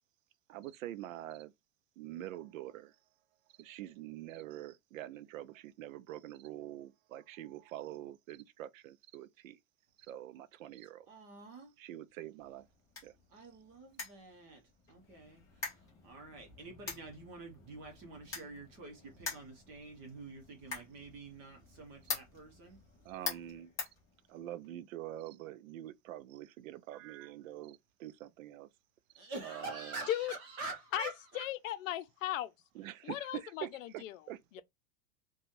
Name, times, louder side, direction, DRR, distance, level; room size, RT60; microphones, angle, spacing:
voice 1, 0.5-1.5 2.0-2.9 3.6-9.6 10.0-11.1 11.8-12.7 13.0-13.1 23.0-23.7 24.3-28.7 29.4-30.0 32.7-34.6, right 13 dB, 85° right, 0.5 m, -45 dB
voice 2, 11.1-11.7 13.3-14.6 14.9-22.8 29.2-31.5, right 3 dB, 30° right, 0.8 m, -47 dB
sound 1, 12.4-24.7, left 5 dB, 10° left, 0.4 m, -46 dB
voice 3, 30.9-32.5 33.0-34.2 34.5-34.6, left 13 dB, 75° left, 0.6 m, -37 dB
3.0 x 2.3 x 2.5 m
supercardioid pair, 165°, 40 cm